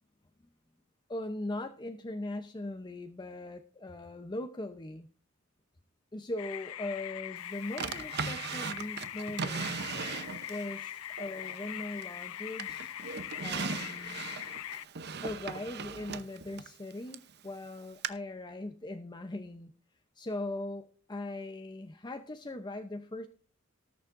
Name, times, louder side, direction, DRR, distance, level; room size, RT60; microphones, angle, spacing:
voice 1, 1.1-5.1 6.1-12.9 13.4-14.2 15.2-19.7 20.1-23.3, left 2 dB, 20° left, 7 dB, 0.7 m, -40 dB
sound 1, 6.4-14.8, left 12 dB, 80° left, 0.5 m, -41 dB
Drawer open or close, 7.8-10.7 11.2-12.2 12.6-17.3 18.0-18.1, right 5 dB, 50° right, 0.8 m, -38 dB
19.0 x 7.1 x 2.6 m, 0.42 s
head